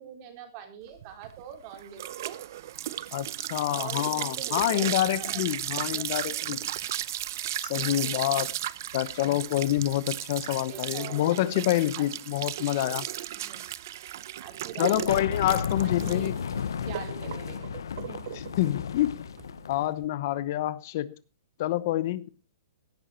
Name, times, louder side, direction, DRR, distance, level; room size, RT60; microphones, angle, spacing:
voice 1, 0.0-2.4 3.7-5.6 5.9-6.5 7.7-8.5 10.7-11.2 11.9-12.4 13.3-13.6 14.4-15.1 15.8-16.3 16.9-17.7 18.1-18.4, right 8 dB, 35° right, 4.1 m, -44 dB
sound 1, 1.0-20.0, right 12 dB, 55° right, 0.7 m, -35 dB
voice 2, 3.1-6.6 7.6-8.5 8.9-13.1 14.8-16.4 18.6-19.2 19.7-21.1 21.6-22.3, left 14 dB, 45° left, 0.9 m, -27 dB
sound 2, 14.9-19.9, left 7 dB, 85° left, 1.0 m, -33 dB
17.0 x 10.5 x 4.4 m
hypercardioid pair, 155°, 2 cm